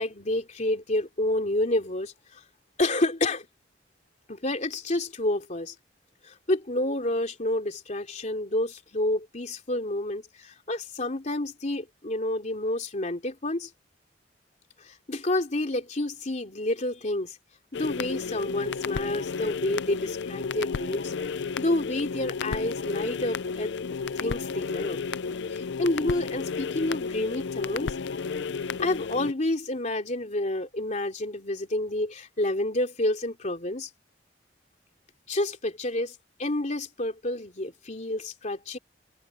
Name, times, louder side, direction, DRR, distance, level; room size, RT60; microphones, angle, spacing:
voice 1, 0.0-2.4 2.8-3.5 4.3-5.7 6.2-13.7 14.8-17.4 17.7-21.1 21.6-23.7 24.1-25.0 25.5-28.0 28.8-33.9 35.3-38.8, left 1 dB, 40° left, 3.0 m, -29 dB
sound 1, 17.7-29.3, left 5 dB, 70° left, 0.5 m, -32 dB
head